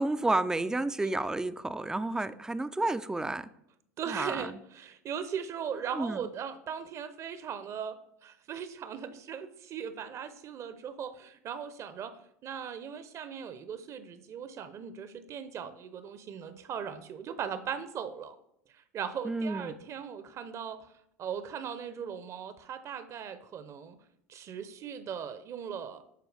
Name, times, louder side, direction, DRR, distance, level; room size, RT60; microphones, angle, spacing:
voice 1, 0.0-3.5 4.1-4.5 5.9-6.2 19.2-19.7, right 2 dB, 10° right, 13 dB, 0.4 m, -31 dB
voice 2, 4.0-18.4 18.7-20.9 21.2-24.0 24.3-26.0, right 7 dB, 40° right, 12 dB, 0.8 m, -39 dB
11.5 x 4.5 x 3.4 m, 0.75 s
hypercardioid pair, 85°, 8 cm